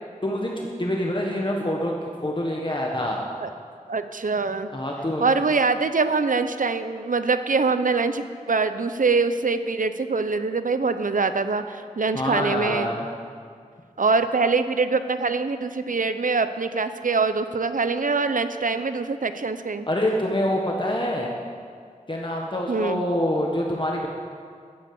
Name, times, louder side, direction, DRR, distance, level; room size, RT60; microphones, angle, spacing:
voice 1, 0.2-1.9 2.2-3.2 4.7-5.3 12.1-13.1 19.9-21.3 22.1-24.1, left 1 dB, 35° left, -1 dB, 1.5 m, -26 dB
voice 2, 3.9-4.7 5.2-12.9 14.0-19.9 22.7-23.0, right 4 dB, 75° right, 10 dB, 0.8 m, -24 dB
12.5 x 9.1 x 7.8 m, 2.1 s
wide cardioid pair, 60°, 14 cm